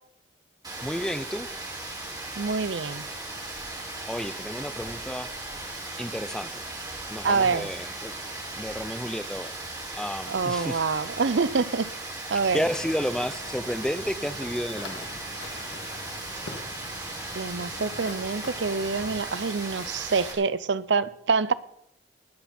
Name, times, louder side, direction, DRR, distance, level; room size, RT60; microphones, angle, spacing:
Rain, 0.6-20.3, right 2 dB, 20° right, 4.6 m, -37 dB
voice 1, 0.8-1.5 4.1-5.3 6.0-6.6 7.1-8.1 8.5-9.5 10.0-10.8 12.5-15.1, equal, 5° left, 0.6 m, -31 dB
voice 2, 2.4-3.0 7.2-7.7 10.3-11.9 12.3-12.6 17.3-21.5, right 4 dB, 75° right, 0.7 m, -26 dB
sound 1, 12.4-19.2, left 2 dB, 70° left, 2.5 m, -44 dB
19.0 x 13.0 x 4.4 m
head